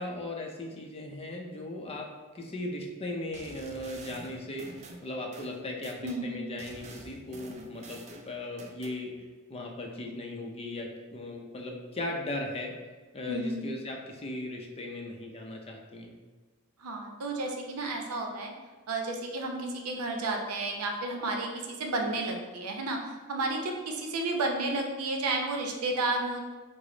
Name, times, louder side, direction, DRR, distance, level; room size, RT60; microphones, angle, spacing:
voice 1, 0.0-4.7 5.0-9.1 9.5-12.7 13.1-16.2, left 1 dB, 25° left, 1 dB, 0.5 m, -37 dB
sound 1, 3.3-6.2 6.6-9.0, right 2 dB, 30° right, 0.4 m, -48 dB
voice 2, 6.0-6.4 13.3-13.6 16.8-18.5 18.9-26.4, right 2 dB, 90° right, 2 dB, 0.6 m, -32 dB
4.8 x 2.0 x 3.8 m, 1.3 s
head